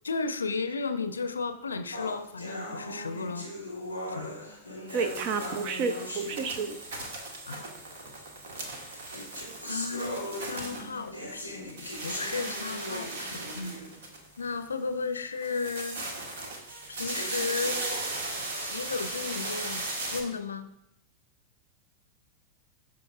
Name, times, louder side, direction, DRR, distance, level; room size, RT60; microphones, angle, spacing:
voice 1, 0.0-3.5 4.1-4.3 7.5-7.7 9.7-13.8 14.4-16.0 16.9-17.8 18.5-20.7, left 4 dB, 75° left, 11 dB, 0.5 m, -34 dB
sound 1, 1.9-7.1 7.9-8.0 8.8-14.1 14.5-14.6 15.1-15.2 15.9-16.0 16.8-17.9, left 1 dB, 90° right, 2.7 m, -40 dB
voice 2, 4.9-6.8, right 5 dB, 40° right, 9 dB, 0.6 m, -30 dB
sound 2, 4.9-11.4 11.7-14.5 15.4-20.2, right 2 dB, 60° right, 1.4 m, -37 dB
13.0 x 5.0 x 2.4 m, 0.79 s
figure-of-eight pair, 90°, 0 cm